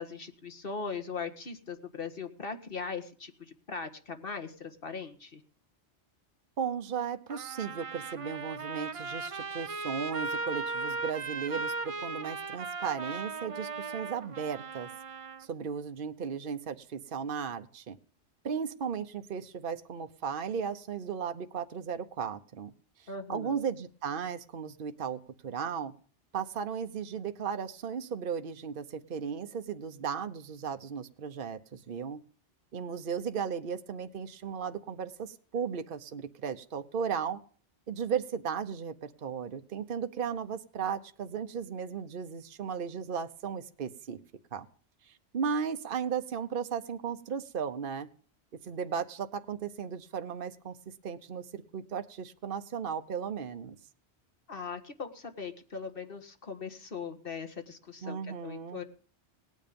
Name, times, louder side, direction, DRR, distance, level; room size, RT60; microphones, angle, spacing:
voice 1, 0.0-5.4 23.1-23.6 54.5-58.8, left 5 dB, 50° left, 7 dB, 1.8 m, -40 dB
voice 2, 6.6-14.9 15.4-18.0 18.4-22.7 23.0-25.9 26.3-32.2 32.7-37.4 37.9-44.2 44.5-44.7 45.1-48.1 48.6-50.8 51.0-53.8 58.0-58.8, right 7 dB, 50° right, 8 dB, 1.1 m, -35 dB
Trumpet, 7.3-15.5, right 4 dB, 35° right, 0.7 m, -37 dB
18.0 x 9.7 x 5.3 m, 0.42 s
omnidirectional pair, 1.2 m